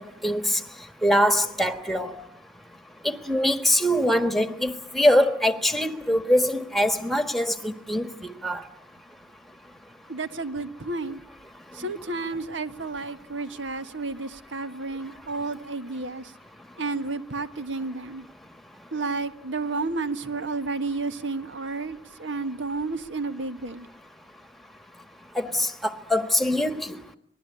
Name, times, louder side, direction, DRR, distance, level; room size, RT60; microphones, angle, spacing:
voice 1, 0.2-0.6 1.0-2.2 3.0-8.1 8.4-8.6 25.3-27.0, equal, ahead, 1.4 m, -23 dB
voice 2, 10.1-11.2 11.7-16.3 16.8-18.2 18.9-23.9, right 3 dB, 90° right, 1.6 m, -31 dB
26.0 x 20.5 x 9.8 m
head